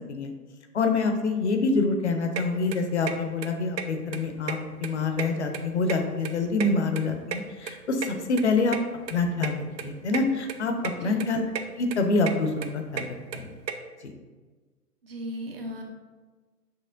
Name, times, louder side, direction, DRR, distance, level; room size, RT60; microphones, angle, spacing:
voice 1, 0.7-8.8 9.1-10.7 11.0-11.4 11.8-13.0 13.3-13.5 14.0-14.1, left 3 dB, 45° left, 5 dB, 0.5 m, -26 dB
sound 1, 2.4-2.5 2.7-3.1 3.4-3.5 3.8-3.9 4.1-4.9 5.1-6.3 6.6-8.1 8.4-8.5 8.7-8.8 9.1-9.2 9.4-9.5 9.8-10.2 10.5-10.9 11.2-11.6 11.9-13.7, right 7 dB, 90° right, 0.6 m, -32 dB
voice 2, 15.0-15.8, equal, 40° right, 2 dB, 0.5 m, -36 dB
6.7 x 3.0 x 2.5 m, 1.3 s
figure-of-eight pair, 125°, 49 cm